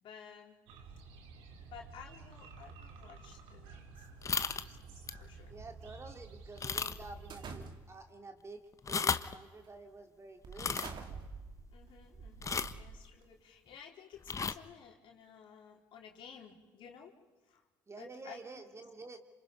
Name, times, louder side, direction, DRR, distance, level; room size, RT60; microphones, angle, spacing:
voice 1, 0.0-0.6 1.7-5.5 11.7-17.1 17.5-17.6 18.0-18.6, left 7 dB, 65° left, 1 dB, 4.0 m, -54 dB
sound 1, 0.7-7.5, right 4 dB, 75° right, 2.8 m, -52 dB
sound 2, 4.2-4.7 5.1-5.3 5.7-5.8 6.6-7.2 7.4-7.5 8.7-9.3 10.5-10.9 12.4-12.8 14.2-14.5, left 5 dB, 35° left, 1.1 m, -34 dB
voice 2, 5.5-10.8 17.9-19.2, right 3 dB, 30° right, 5 dB, 3.0 m, -50 dB
sound 3, 7.3-8.1 8.9-9.2 9.6-9.8 10.4-13.3, right 4 dB, 55° right, 2.6 m, -47 dB
28.5 x 26.5 x 5.4 m, 1.3 s
hypercardioid pair, 60°, 9 cm